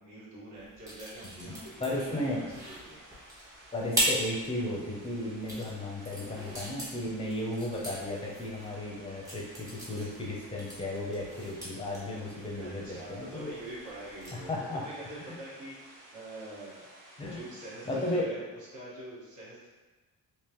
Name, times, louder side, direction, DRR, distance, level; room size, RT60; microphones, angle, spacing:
voice 1, 0.0-3.0 12.6-16.8 17.2-19.7, right 1 dB, 60° right, -7 dB, 1.5 m, -45 dB
sound 1, 0.6-14.5, equal, 10° right, 1.1 m, -39 dB
sound 2, 1.4-18.2, right 1 dB, 85° right, 1.1 m, -54 dB
voice 2, 1.8-2.4 3.7-13.5 14.3-14.8 15.2-15.4 17.2-17.4 17.9-18.3, left 1 dB, 15° left, -3 dB, 0.5 m, -34 dB
3.6 x 2.9 x 2.9 m, 1.2 s
cardioid pair, 175°, 33 cm